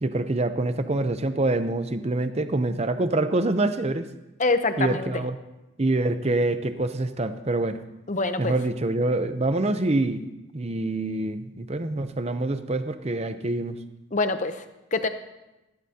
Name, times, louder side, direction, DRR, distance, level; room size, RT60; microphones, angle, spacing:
voice 1, 0.0-4.1 4.8-5.4 5.8-7.8 8.4-10.2 10.5-13.8, right 2 dB, 30° right, 10 dB, 0.6 m, -25 dB
voice 2, 4.4-5.1 8.1-8.5 14.1-14.6 14.9-15.1, left 3 dB, 35° left, 9 dB, 0.7 m, -25 dB
16.0 x 14.5 x 2.8 m, 1.0 s
head